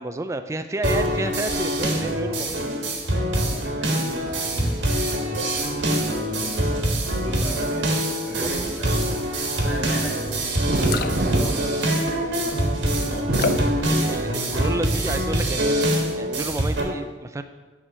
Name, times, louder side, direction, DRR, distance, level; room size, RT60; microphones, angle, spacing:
voice 1, 0.0-2.6 8.3-8.5 13.8-15.8 16.1-17.4, right 2 dB, 15° right, 9 dB, 0.3 m, -30 dB
sound 1, 0.8-16.8, right 1 dB, 80° right, 1.4 m, -24 dB
voice 2, 3.2-4.8 5.7-7.9 8.2-9.3 9.6-14.4, equal, ahead, -10 dB, 2.3 m, -37 dB
sound 2, 10.3-10.4 10.7-11.4 11.7-12.3 13.3-13.8 14.3-14.8 15.2-15.4, left 5 dB, 50° left, 0.4 m, -30 dB
sound 3, 10.7-12.6 13.1-14.5 14.9-15.8, right 2 dB, 55° right, 0.6 m, -27 dB
9.9 x 3.6 x 6.1 m, 1.3 s
head